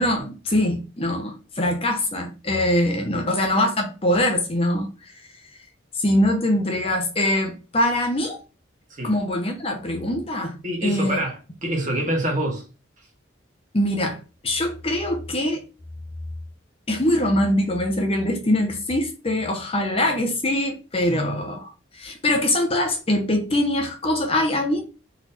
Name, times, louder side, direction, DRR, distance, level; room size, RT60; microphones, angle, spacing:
voice 1, 0.0-4.9 6.0-8.4 9.0-10.6 10.8-11.2 13.7-14.2 14.4-15.6 16.9-24.8, left 1 dB, 30° left, 0.7 m, -23 dB
voice 2, 3.0-3.3 8.9-9.1 10.6-12.6 21.1-21.3, right 1 dB, 40° right, 1.5 m, -27 dB
4.0 x 3.1 x 4.0 m
head